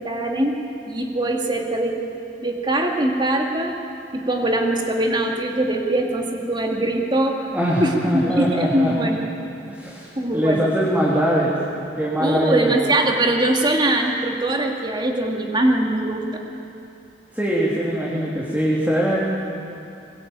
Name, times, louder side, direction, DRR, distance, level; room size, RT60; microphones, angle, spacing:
voice 1, 0.0-3.7 4.1-7.5 7.8-9.2 10.2-10.6 12.2-16.4, right 1 dB, 25° right, 1 dB, 2.4 m, -22 dB
voice 2, 7.5-8.9 9.7-10.1 10.3-11.5 12.0-12.7 17.3-19.2, equal, 10° right, -7 dB, 3.1 m, -22 dB
21.5 x 20.5 x 9.0 m, 2.6 s
head